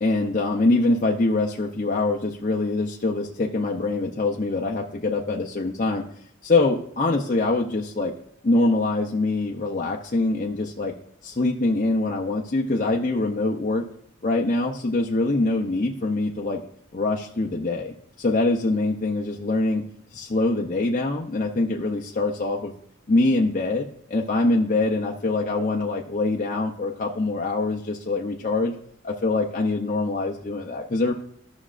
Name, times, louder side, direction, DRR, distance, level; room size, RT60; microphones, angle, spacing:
voice 1, 0.0-6.1 6.4-8.1 8.4-10.9 11.2-13.9 14.2-16.6 16.9-19.8 20.1-22.7 23.1-28.7 29.0-31.1, left 2 dB, 40° left, -1 dB, 0.6 m, -24 dB
13.5 x 6.1 x 2.4 m, 0.69 s
head